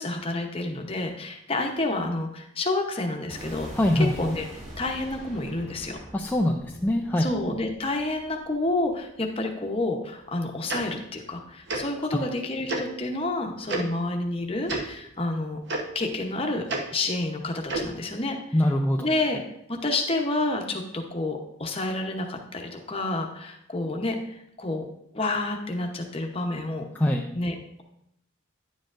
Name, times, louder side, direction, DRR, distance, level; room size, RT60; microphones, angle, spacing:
voice 1, 0.0-3.7 3.9-4.5 4.8-6.0 7.2-15.6 15.9-16.6 16.9-18.7 19.0-19.4 19.7-24.8 25.1-26.9 27.3-27.8, left 2 dB, 25° left, 3 dB, 0.8 m, -29 dB
sound 1, 3.3-9.3, equal, 35° right, 3.3 m, -43 dB
voice 2, 3.8-4.1 6.1-7.2 18.5-19.1 27.0-27.3, left 1 dB, 10° left, -1 dB, 0.3 m, -23 dB
Tick-tock, 10.7-10.8 11.7-11.8 12.7-12.8 13.7-13.8 14.7-14.8 15.7-15.8 16.7-16.8 17.7-17.9, right 3 dB, 50° right, 1.0 m, -28 dB
10.0 x 7.5 x 2.5 m, 0.77 s
head